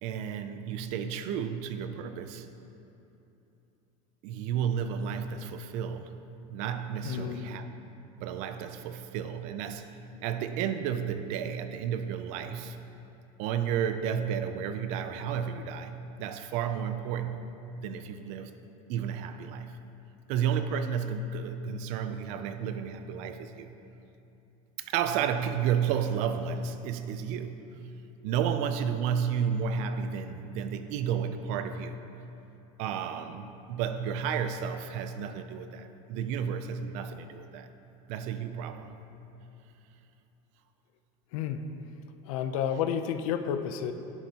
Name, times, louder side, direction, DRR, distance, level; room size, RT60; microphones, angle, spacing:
voice 1, 0.0-2.5 4.2-6.2 6.5-7.7 8.2-12.8 13.4-17.4 17.8-18.5 18.9-19.7 20.3-23.8 24.8-27.6 28.2-32.0 32.8-37.7 38.1-39.0 42.7-42.8, right 7 dB, 40° right, 0.4 m, -32 dB
voice 2, 7.0-7.6 41.3-41.6 42.2-43.9, left 8 dB, 70° left, 0.5 m, -31 dB
10.5 x 7.9 x 2.8 m
cardioid pair, 175°, 18 cm